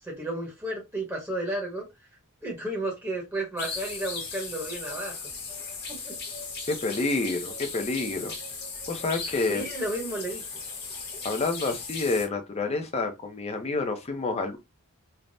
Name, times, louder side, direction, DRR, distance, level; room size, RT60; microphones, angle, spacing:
voice 1, 0.0-1.8 2.4-5.3 5.9-6.1 9.5-10.4, right 1 dB, 10° right, 0.8 m, -32 dB
sound 1, 3.6-12.3, left 4 dB, 45° left, 0.9 m, -37 dB
voice 2, 6.7-8.3 8.9-9.6 11.2-14.6, left 3 dB, 30° left, 0.5 m, -28 dB
3.3 x 2.0 x 2.5 m
head